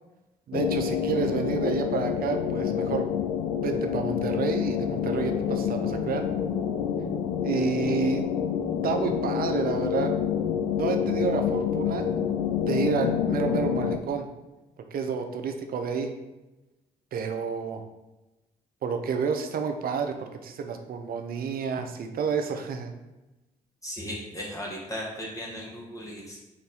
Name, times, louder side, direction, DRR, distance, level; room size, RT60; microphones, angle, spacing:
sound 1, 0.5-14.0, left 8 dB, 80° left, 0.4 m, -27 dB
voice 1, 0.5-3.1 3.6-6.2 7.4-8.2 8.8-10.1 10.8-12.2 12.7-14.3 14.9-16.1 17.1-17.8 18.8-22.9, right 5 dB, 55° right, 6 dB, 0.6 m, -29 dB
voice 2, 23.8-26.4, equal, 20° left, -4 dB, 1.2 m, -36 dB
4.4 x 2.6 x 3.8 m, 1.0 s
hypercardioid pair, 55°, 18 cm